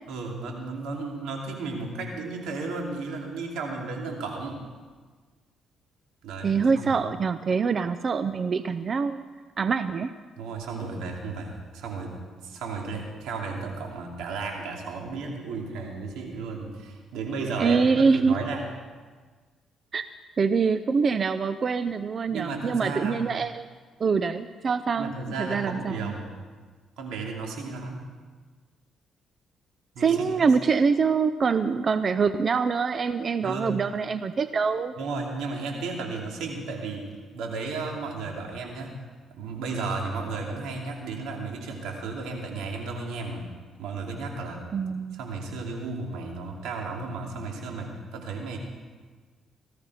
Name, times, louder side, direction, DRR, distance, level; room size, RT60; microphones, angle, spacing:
voice 1, 0.1-4.6 6.2-6.9 10.4-18.7 22.3-23.2 24.9-26.3 27.0-28.1 29.9-30.5 33.4-33.7 35.0-38.9 39.3-43.5 43.8-44.6 45.1-48.6, right 3 dB, 90° right, 1 dB, 2.8 m, -34 dB
voice 2, 6.4-9.3 9.6-10.1 17.6-18.3 19.9-20.0 20.4-23.7 24.0-25.1 25.4-26.1 30.0-34.9 44.7-45.2, right 5 dB, 45° right, 12 dB, 0.5 m, -24 dB
19.0 x 14.0 x 4.9 m, 1.5 s
cardioid pair, 90°, 0 cm